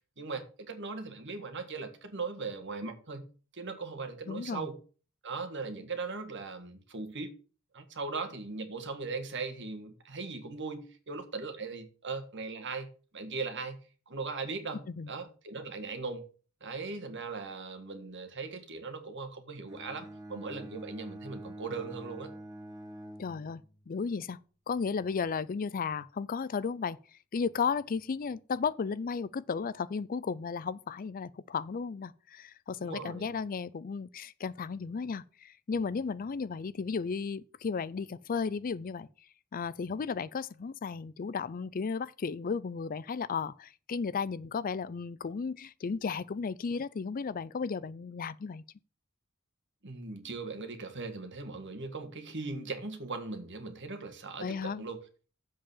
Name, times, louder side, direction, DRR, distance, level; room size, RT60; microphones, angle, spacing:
voice 1, 0.2-3.3 3.5-4.8 5.2-7.3 7.7-12.9 13.1-13.8 14.1-16.3 16.6-22.3 32.8-33.3 49.8-55.0, right 4 dB, 55° right, 1.8 m, -39 dB
voice 2, 4.3-4.7 14.9-15.1 23.2-24.4 24.7-27.0 27.3-39.1 39.5-48.6 54.4-54.8, left 5 dB, 40° left, 0.4 m, -34 dB
Bowed string instrument, 19.7-23.9, right 1 dB, 15° right, 1.8 m, -46 dB
7.5 x 6.7 x 7.2 m
head